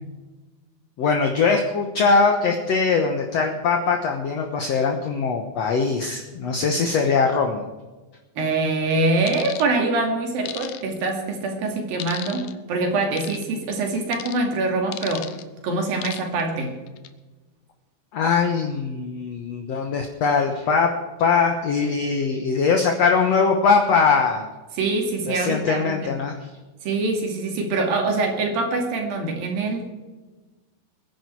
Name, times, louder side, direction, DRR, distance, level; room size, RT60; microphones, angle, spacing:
voice 1, 1.0-7.6 18.1-20.9 21.2-24.5 25.3-26.4, left 5 dB, 60° left, 3 dB, 1.9 m, -21 dB
voice 2, 8.4-15.3 15.6-16.7 24.8-26.0 26.8-29.9, right 3 dB, 80° right, 2 dB, 4.3 m, -24 dB
sound 1, 9.3-9.7 10.5-11.1 12.0-12.5 13.2-13.4 14.1-14.4 14.9-15.4 16.0-16.4 16.9-17.1, left 12 dB, 80° left, 2.6 m, -35 dB
22.5 x 10.5 x 4.7 m, 1.2 s
omnidirectional pair, 4.1 m